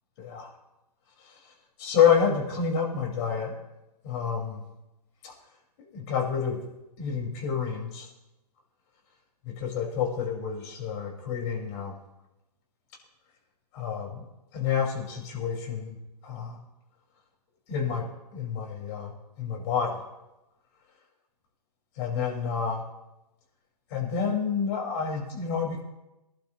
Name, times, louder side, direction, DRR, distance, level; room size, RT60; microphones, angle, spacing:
voice 1, 0.2-0.5 1.3-1.4 1.8-3.5 4.0-4.6 5.2-5.3 5.8-6.6 7.0-8.1 9.5-12.0 13.7-14.2 14.5-16.0 16.2-16.6 17.7-20.0 22.0-22.8 23.9-25.8, left 7 dB, 45° left, -1 dB, 5.4 m, -28 dB
23.5 x 12.0 x 3.2 m, 0.97 s
hypercardioid pair, 130°, 21 cm